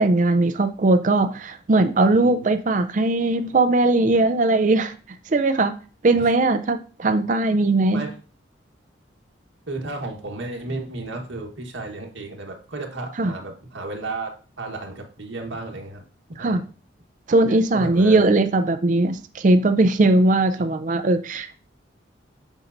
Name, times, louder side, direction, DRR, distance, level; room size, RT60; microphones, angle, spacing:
voice 1, 0.0-4.9 5.3-5.7 6.0-8.0 13.2-13.3 16.4-16.6 17.3-21.6, right 2 dB, 40° right, 8 dB, 0.4 m, -19 dB
voice 2, 2.1-2.5 6.2-6.3 7.0-7.1 7.9-8.1 9.7-14.3 14.6-16.0 16.4-16.6 17.7-18.2, right 2 dB, 75° right, 1 dB, 1.4 m, -33 dB
7.2 x 5.3 x 2.6 m, 0.38 s
head